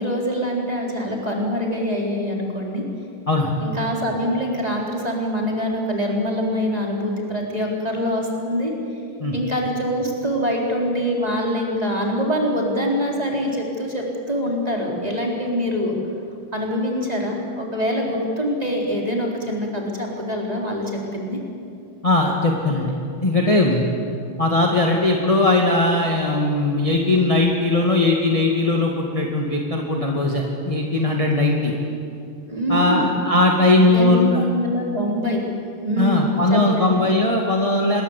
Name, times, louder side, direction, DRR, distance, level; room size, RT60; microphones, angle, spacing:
voice 1, 0.0-2.8 3.6-8.7 9.3-16.0 16.5-21.4 32.5-33.1 33.7-35.4 35.8-37.1, equal, 15° right, -1 dB, 4.3 m, -24 dB
voice 2, 22.0-22.9 23.2-23.9 24.4-31.7 32.7-34.5 36.0-38.0, left 2 dB, 15° left, -1 dB, 2.1 m, -19 dB
27.0 x 21.5 x 8.4 m, 2.5 s
omnidirectional pair, 2.3 m